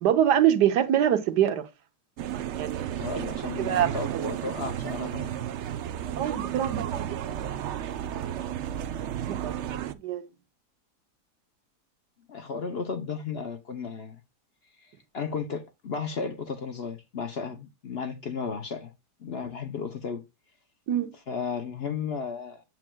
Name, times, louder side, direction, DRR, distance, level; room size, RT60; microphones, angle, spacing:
voice 1, 0.0-1.7 2.5-3.0 3.6-3.9 6.2-7.3 8.2-8.4 9.3-9.6 10.0-10.2 20.9-21.1, right 10 dB, 85° right, 1.5 m, -24 dB
sound 1, 2.2-9.9, right 10 dB, 70° right, 0.6 m, -33 dB
voice 2, 3.0-5.5 12.3-14.2 14.8-18.9 19.2-20.2 21.3-22.6, left 5 dB, 55° left, 0.7 m, -34 dB
7.6 x 7.3 x 2.2 m
omnidirectional pair, 1.7 m